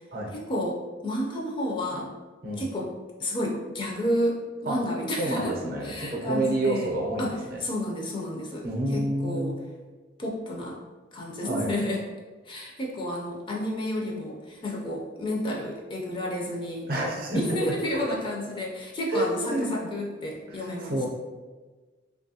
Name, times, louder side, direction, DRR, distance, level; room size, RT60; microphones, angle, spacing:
voice 1, 0.3-2.1 2.6-2.9 3.2-5.5 5.8-6.9 7.2-8.7 8.9-9.5 10.2-10.8 11.1-12.0 12.5-16.9 17.3-21.1, left 1 dB, 25° left, -2 dB, 0.4 m, -31 dB
voice 2, 5.2-7.6 8.6-9.6 11.4-11.8 16.9-17.4 18.1-18.2 19.1-19.9 20.5-21.1, right 1 dB, 50° right, -1 dB, 0.5 m, -29 dB
2.9 x 2.3 x 2.7 m, 1.3 s
head